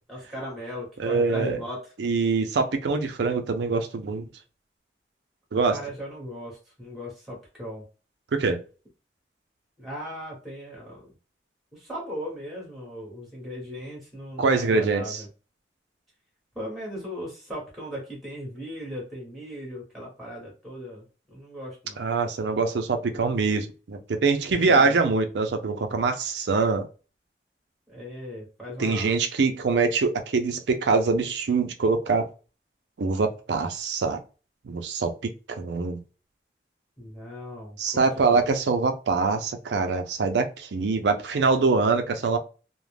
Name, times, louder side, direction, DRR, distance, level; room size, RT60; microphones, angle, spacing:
voice 1, 0.1-1.9 5.7-7.8 9.8-11.1 11.7-15.3 16.5-21.1 21.3-22.0 24.5-25.0 27.9-29.1 37.0-38.4, equal, ahead, 0.9 m, -37 dB
voice 2, 1.0-1.6 2.0-4.3 5.5-5.8 8.3-8.6 14.4-15.2 22.0-26.9 28.8-32.3 33.0-34.2 34.6-36.0 37.8-42.4, right 4 dB, 85° right, 0.5 m, -24 dB
2.3 x 2.0 x 3.2 m
head